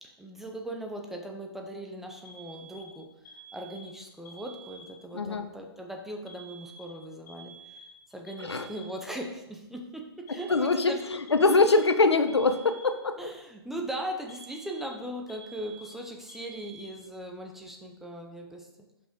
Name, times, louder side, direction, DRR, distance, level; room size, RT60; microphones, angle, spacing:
voice 1, 0.0-3.1 3.5-7.5 8.1-11.2 13.2-18.7, right 1 dB, ahead, 2 dB, 0.5 m, -39 dB
Alarm, 2.2-5.2 6.3-9.2 10.3-13.2 14.3-17.3, right 3 dB, 45° left, 2.1 m, -50 dB
voice 2, 5.1-5.4 8.4-8.7 10.5-13.3, left 3 dB, 85° left, 9 dB, 0.6 m, -23 dB
5.4 x 5.2 x 3.6 m, 0.90 s
figure-of-eight pair, 130°, 14 cm